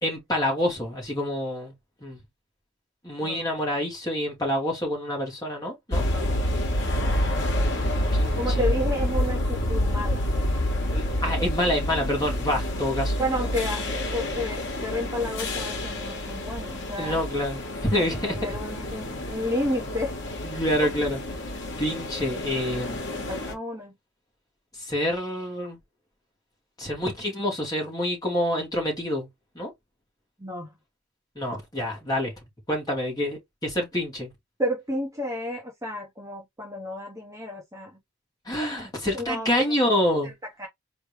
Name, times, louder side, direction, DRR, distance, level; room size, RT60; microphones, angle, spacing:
voice 1, 0.0-1.7 2.0-2.2 3.0-6.0 8.1-8.6 10.9-13.1 17.0-18.4 20.4-21.2 21.8-23.0 24.9-25.8 26.8-29.3 29.5-29.7 31.4-32.3 32.7-34.3 38.5-40.3, left 1 dB, 20° left, 2.3 m, -27 dB
sound 1, 5.9-23.5, left 1 dB, 55° left, 1.4 m, -28 dB
voice 2, 8.4-10.2 13.2-13.8 14.1-17.3 18.0-20.1 23.1-23.9 30.4-30.7 34.6-38.0 39.1-39.8 40.2-40.3 40.6-40.7, left 1 dB, 15° right, 1.0 m, -31 dB
4.3 x 3.2 x 3.2 m
head